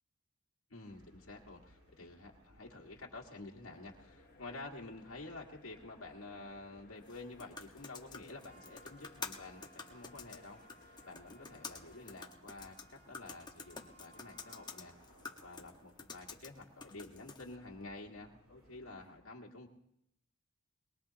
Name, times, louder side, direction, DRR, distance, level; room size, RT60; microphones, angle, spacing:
voice 1, 0.7-10.6 11.0-14.9 15.4-19.7, left 2 dB, 65° left, -2 dB, 1.8 m, -50 dB
sound 1, 0.9-19.2, right 1 dB, 85° right, 6.6 m, -63 dB
sound 2, 3.6-12.2, left 3 dB, 40° left, 1.2 m, -63 dB
sound 3, 7.0-17.5, left 4 dB, 20° left, 1.2 m, -50 dB
22.0 x 21.5 x 2.9 m, 0.79 s
head